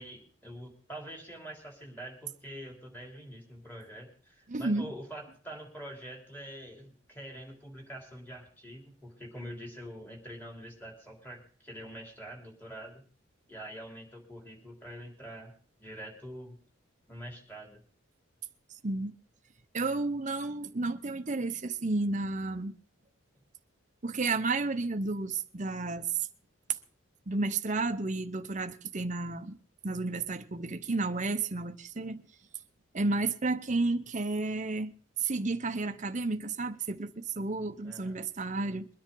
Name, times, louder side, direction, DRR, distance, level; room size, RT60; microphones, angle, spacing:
voice 1, 0.0-13.0 13.5-15.5 15.8-16.6 17.1-17.8 37.8-38.2, equal, 10° left, 3.4 m, -45 dB
voice 2, 4.5-4.9 18.8-19.1 19.7-22.7 24.0-26.1 27.3-29.6 29.8-32.2 32.9-34.9 35.2-38.9, right 3 dB, 35° right, 0.7 m, -32 dB
22.5 x 10.0 x 3.8 m
head